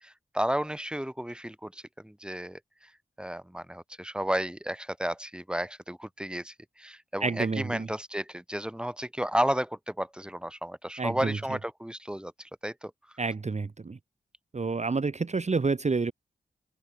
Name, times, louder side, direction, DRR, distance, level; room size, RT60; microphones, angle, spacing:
voice 1, 0.0-2.9 3.2-12.9, equal, 5° right, 2.0 m, -33 dB
voice 2, 7.2-7.9 11.0-11.4 13.2-14.0 14.5-16.1, right 4 dB, 35° right, 0.9 m, -29 dB
open air
cardioid pair, 55°, 20 cm